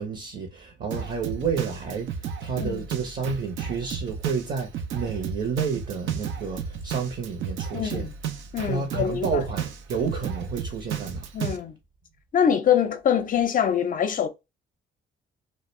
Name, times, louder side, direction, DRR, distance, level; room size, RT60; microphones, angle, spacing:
voice 1, 0.0-8.1 8.6-11.3, right 5 dB, 40° right, 0.7 m, -30 dB
Drum kit, 0.9-11.6, right 7 dB, 75° right, 0.5 m, -33 dB
voice 2, 7.7-8.1 8.5-9.4 11.3-11.8 12.3-14.3, left 8 dB, 45° left, 0.5 m, -24 dB
2.3 x 2.1 x 3.1 m
cardioid pair, 90°, 20 cm